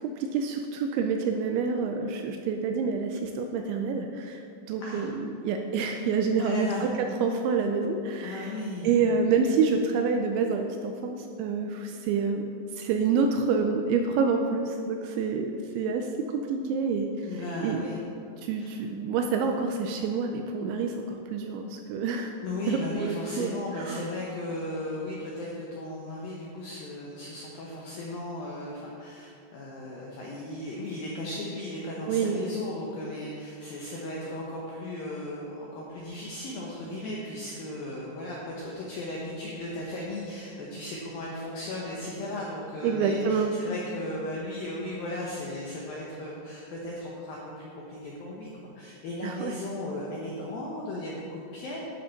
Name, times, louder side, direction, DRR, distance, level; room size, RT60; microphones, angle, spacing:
voice 1, 0.2-8.6 8.8-12.4 12.7-17.9 18.4-22.3 22.7-24.0 32.1-32.4 42.8-43.5 49.2-49.5, right 5 dB, 85° right, 4 dB, 2.7 m, -28 dB
voice 2, 6.4-6.9 8.2-9.0 17.3-18.0 18.6-18.7 19.4-19.5 22.4-51.8, left 1 dB, 80° left, -4 dB, 2.1 m, -36 dB
11.5 x 6.9 x 5.8 m, 2.6 s
omnidirectional pair, 5.7 m